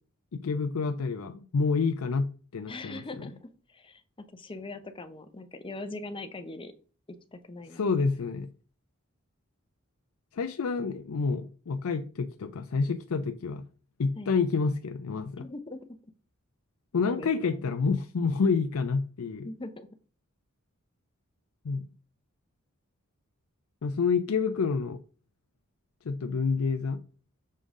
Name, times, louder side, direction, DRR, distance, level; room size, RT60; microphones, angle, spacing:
voice 1, 0.3-3.3 7.7-8.5 10.3-13.6 14.0-15.5 16.9-19.5 21.6-21.9 23.8-25.0 26.0-27.0, left 4 dB, 70° left, 7 dB, 0.5 m, -28 dB
voice 2, 2.7-4.0 4.3-6.7 7.1-8.1 14.2-14.4 15.4-15.8 17.0-17.7 19.4-19.9, left 2 dB, 25° left, 9 dB, 0.7 m, -41 dB
6.6 x 5.3 x 3.7 m, 0.39 s
head